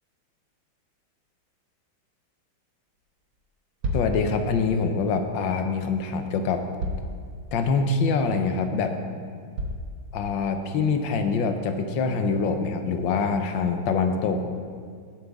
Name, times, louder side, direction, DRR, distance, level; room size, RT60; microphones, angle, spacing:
sound 1, 3.3-3.4 3.8-4.2 5.7-5.8 6.8-7.2 7.7-7.8 8.4-8.5 9.6-9.9, equal, 70° right, 1.9 m, -30 dB
voice 1, 3.9-6.6 7.5-8.9 10.1-14.4, left 4 dB, 70° left, 6 dB, 1.5 m, -25 dB
18.5 x 7.5 x 3.6 m, 2.1 s
omnidirectional pair, 2.3 m